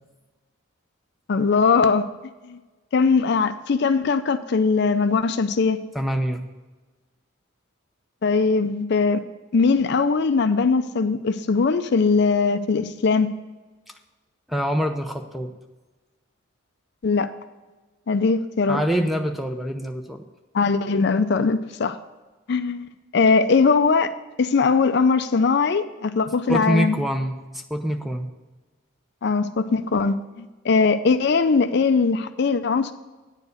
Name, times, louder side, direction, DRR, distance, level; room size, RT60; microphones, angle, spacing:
voice 1, 1.3-2.0 2.5-2.6 2.9-5.8 8.2-9.2 9.5-13.3 17.0-17.3 18.1-18.8 20.5-22.0 22.5-22.9 23.1-24.1 24.4-26.9 29.2-32.9, left 4 dB, 55° left, 11 dB, 0.4 m, -20 dB
voice 2, 5.9-6.4 14.5-15.5 18.7-20.2 26.5-28.3, equal, ahead, 5 dB, 0.6 m, -25 dB
9.6 x 4.7 x 7.9 m, 1.2 s
head